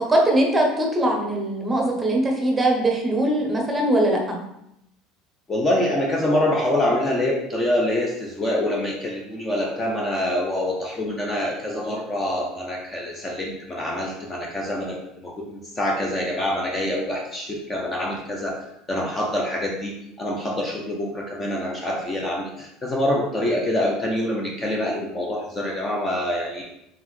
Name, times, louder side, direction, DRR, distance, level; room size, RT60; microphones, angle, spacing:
voice 1, 0.1-4.4, right 1 dB, 15° right, 0 dB, 0.8 m, -21 dB
voice 2, 5.5-18.6 18.9-26.6, left 1 dB, 20° left, 0 dB, 0.5 m, -25 dB
3.7 x 3.4 x 3.2 m, 0.82 s
supercardioid pair, 140°, 0 cm